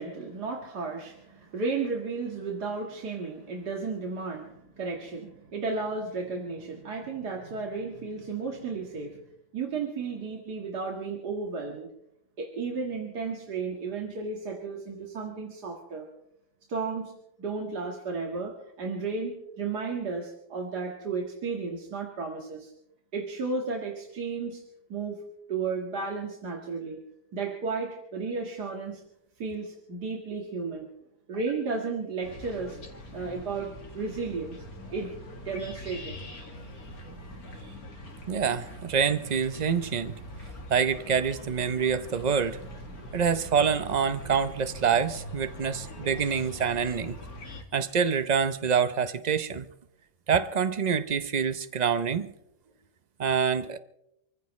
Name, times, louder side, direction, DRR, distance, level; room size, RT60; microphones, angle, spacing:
voice 1, 0.0-9.2 9.5-11.9 12.4-16.1 16.7-17.1 17.4-22.7 23.1-24.6 24.9-25.2 25.5-27.0 27.3-29.0 29.4-30.9 31.3-32.8 33.1-34.6 34.9-35.1 35.4-36.2 37.5-37.8 43.0-43.2, right 4 dB, 70° right, 2.4 m, -33 dB
sound 1, 32.2-47.6, left 1 dB, 60° left, 2.6 m, -43 dB
voice 2, 38.3-40.1 40.7-42.6 43.1-47.2 47.7-49.7 50.3-52.3 53.2-53.8, right 6 dB, 45° right, 0.5 m, -26 dB
28.5 x 15.0 x 3.2 m
omnidirectional pair, 1.8 m